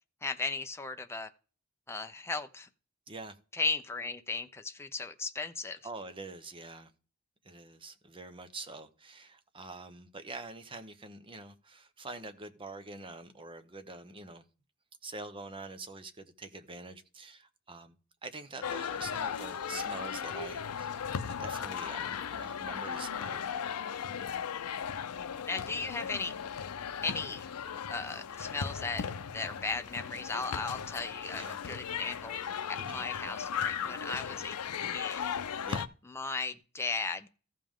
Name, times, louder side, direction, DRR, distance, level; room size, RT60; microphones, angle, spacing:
voice 1, 0.2-1.3 1.9-2.7 3.5-5.8 25.5-26.3 27.0-27.5 27.9-29.1 29.3-32.4 32.7-35.3 36.1-37.3, left 3 dB, 10° left, 0.6 m, -36 dB
voice 2, 5.8-6.9 7.4-14.4 15.0-18.0 18.2-20.9 21.3-23.4 31.3-31.6 32.8-33.0 35.6-35.8, right 3 dB, 25° right, 0.8 m, -45 dB
sound 1, 18.6-35.9, left 7 dB, 85° left, 0.5 m, -37 dB
14.5 x 5.2 x 3.7 m
head